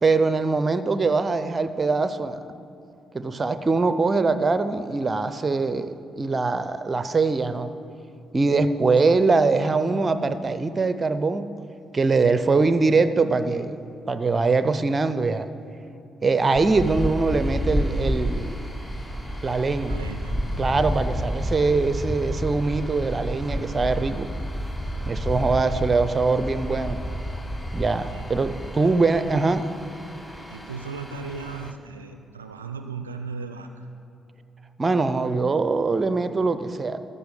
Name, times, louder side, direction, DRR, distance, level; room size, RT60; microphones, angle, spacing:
voice 1, 0.0-2.4 3.1-7.7 8.3-11.5 11.9-13.8 14.1-15.5 16.2-18.6 19.4-20.0 20.6-24.3 25.1-27.0 27.7-29.7 34.8-37.0, right 3 dB, 30° right, 12 dB, 0.6 m, -22 dB
sound 1, 16.6-31.7, equal, 10° left, 0.9 m, -30 dB
voice 2, 19.8-20.4 25.7-25.8 28.1-28.3 28.8-28.9 30.5-33.9, right 4 dB, 85° right, 7 dB, 0.3 m, -37 dB
14.0 x 5.6 x 6.6 m, 2.8 s
figure-of-eight pair, 45°, 0 cm